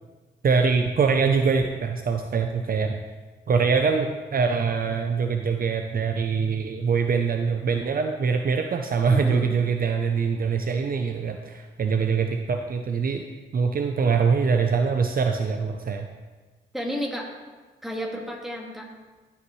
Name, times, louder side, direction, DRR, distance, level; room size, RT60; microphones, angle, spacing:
voice 1, 0.4-3.0 3.5-13.3 13.5-16.1, right 5 dB, 45° right, 5 dB, 0.7 m, -23 dB
voice 2, 9.1-9.6 16.7-17.3 17.8-18.9, equal, ahead, -1 dB, 2.1 m, -32 dB
14.0 x 5.8 x 3.2 m, 1.3 s
cardioid pair, 65°, 20 cm